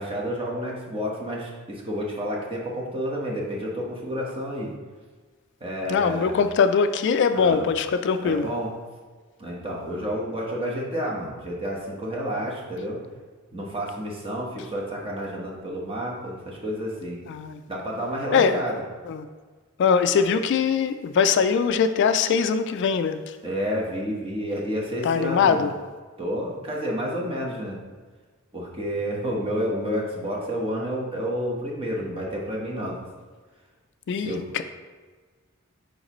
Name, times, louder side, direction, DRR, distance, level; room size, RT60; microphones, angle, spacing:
voice 1, 0.0-4.7 5.6-6.4 7.3-7.7 8.2-8.7 9.4-13.0 13.5-17.2 17.7-18.8 23.4-25.7 26.2-27.8 28.5-33.0 34.2-34.5, equal, 25° right, -3 dB, 1.2 m, -30 dB
voice 2, 5.9-8.5 17.3-17.6 18.3-18.6 19.1-19.3 19.8-23.4 25.0-25.7 34.1-34.6, left 6 dB, 55° left, 9 dB, 0.3 m, -22 dB
6.3 x 5.0 x 3.1 m, 1.4 s
head